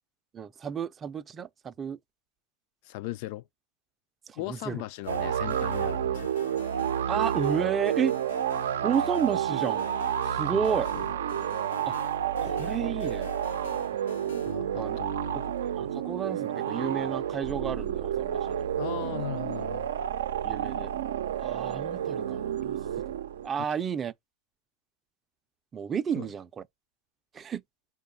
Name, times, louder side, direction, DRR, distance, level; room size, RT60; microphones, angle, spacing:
voice 1, 0.3-2.0 4.3-4.8 7.1-8.2 8.8-9.9 10.3-10.9 11.8-12.0 12.4-13.3 14.7-15.0 15.8-18.7 20.4-20.9 21.4-22.8 23.4-24.1 25.7-26.6 27.3-27.6, right 7 dB, 20° right, 0.4 m, -31 dB
voice 2, 2.8-3.5 4.4-6.3 10.5-11.1 14.5-15.4 18.8-19.9 26.2-26.3, left 16 dB, 55° left, 0.3 m, -38 dB
sound 1, 5.0-14.6, left 6 dB, 85° left, 0.7 m, -46 dB
sound 2, 5.1-23.5, right 9 dB, 85° right, 0.5 m, -30 dB
4.6 x 2.2 x 4.0 m
hypercardioid pair, 125°, 0 cm